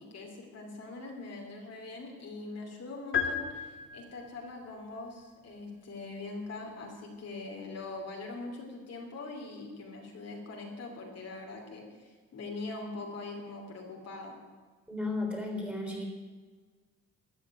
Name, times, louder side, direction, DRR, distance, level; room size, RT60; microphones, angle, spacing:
voice 1, 0.0-14.4, left 3 dB, 55° left, 1 dB, 2.9 m, -42 dB
sound 1, 3.1-4.4, left 7 dB, 40° left, 1.5 m, -33 dB
voice 2, 14.9-16.1, left 2 dB, 5° right, 1 dB, 3.7 m, -34 dB
13.5 x 6.5 x 9.8 m, 1.5 s
cardioid pair, 90°, 30 cm